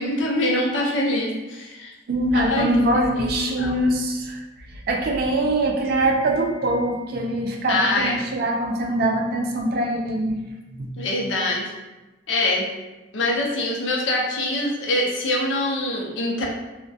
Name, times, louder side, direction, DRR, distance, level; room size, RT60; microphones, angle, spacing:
voice 1, 0.0-1.9 2.3-2.7 2.9-3.8 7.7-8.2 11.0-11.7 12.3-12.6 13.1-16.4, left 1 dB, 65° left, -2 dB, 0.5 m, -24 dB
voice 2, 2.1-4.4 4.7-10.4 10.7-10.9, right 1 dB, 50° right, 1 dB, 0.3 m, -23 dB
2.2 x 2.1 x 2.6 m, 1.1 s
head